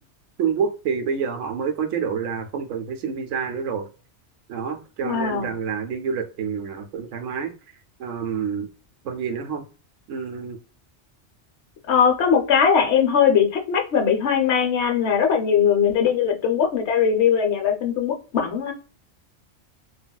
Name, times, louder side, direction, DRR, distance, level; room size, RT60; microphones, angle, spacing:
voice 1, 0.4-3.9 4.5-7.5 8.0-8.7 9.0-9.6 10.1-10.6, right 6 dB, 80° right, 0.9 m, -28 dB
voice 2, 5.0-5.5 11.9-18.7, left 7 dB, 70° left, 0.9 m, -20 dB
3.3 x 2.2 x 2.2 m
omnidirectional pair, 1.2 m